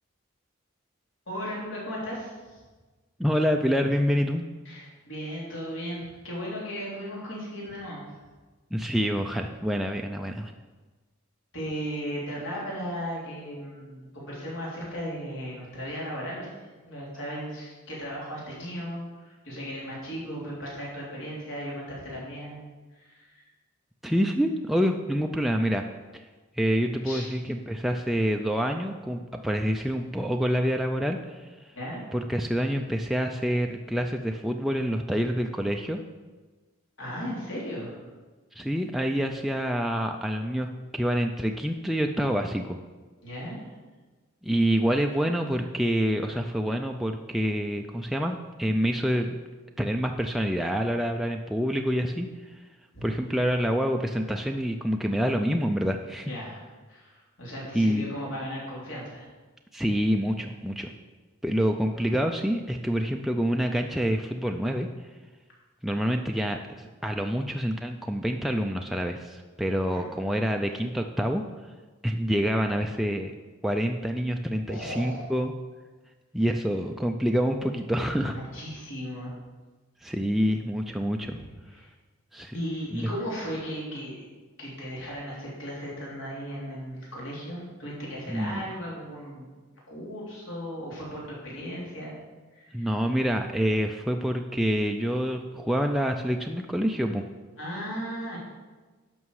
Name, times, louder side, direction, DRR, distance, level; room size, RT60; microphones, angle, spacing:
voice 1, 1.3-2.6 4.7-8.2 11.5-22.6 23.0-23.5 27.0-27.3 31.7-32.0 37.0-38.0 43.2-43.6 52.9-53.1 56.3-56.6 56.9-59.3 69.9-70.1 74.7-75.3 78.3-79.4 81.2-81.9 82.5-84.3 84.6-89.6 89.9-92.2 92.5-92.9 97.6-98.4, equal, 70° left, -5 dB, 3.5 m, -36 dB
voice 2, 3.2-4.4 8.7-10.5 24.0-25.8 26.1-26.2 26.6-31.5 32.1-36.0 38.5-40.7 40.9-42.8 44.4-49.4 49.8-52.6 53.0-56.3 57.7-58.0 59.7-60.9 61.4-64.9 65.8-71.4 72.0-73.3 73.6-75.5 76.3-78.4 80.0-81.4 82.3-82.5 82.9-83.1 88.3-88.6 92.7-97.2, equal, ahead, 3 dB, 0.4 m, -27 dB
11.0 x 6.1 x 4.8 m, 1.3 s
head